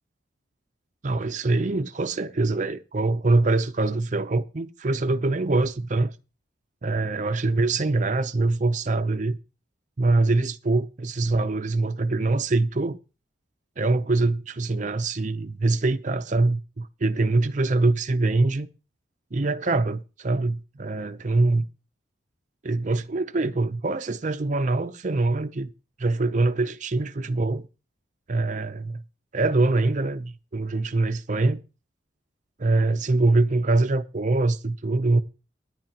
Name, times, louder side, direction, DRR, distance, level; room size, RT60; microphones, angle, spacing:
voice 1, 1.0-6.1 6.8-9.4 10.0-13.0 13.8-18.7 19.3-21.7 22.6-25.7 26.0-27.7 28.3-29.0 29.3-31.6 32.6-35.2, right 2 dB, 40° right, 0.6 m, -24 dB
16.5 x 10.5 x 2.9 m
head